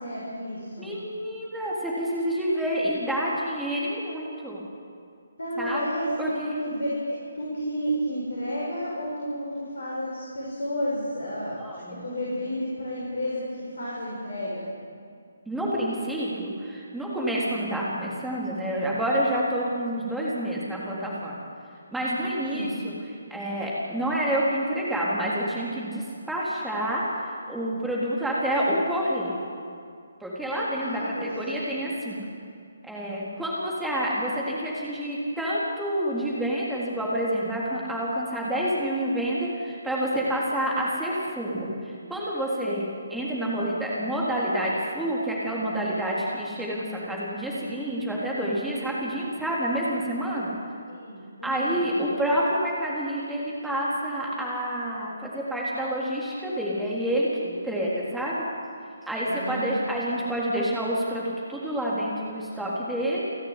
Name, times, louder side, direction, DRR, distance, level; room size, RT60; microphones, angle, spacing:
voice 1, 0.0-1.0 5.4-6.3 6.6-11.6 11.9-14.7 22.5-22.7 30.7-31.9 50.9-51.8 59.3-59.8 60.1-60.2, equal, 65° left, -4 dB, 6.7 m, -31 dB
voice 2, 0.8-4.6 5.6-5.8 6.2-6.6 11.6-12.0 15.5-21.4 21.9-22.9 23.3-29.4 30.2-32.2 32.8-50.5 51.4-58.4 59.1-63.2, right 1 dB, 5° right, -6 dB, 3.7 m, -28 dB
29.5 x 12.5 x 9.5 m, 2.3 s
figure-of-eight pair, 140°, 0 cm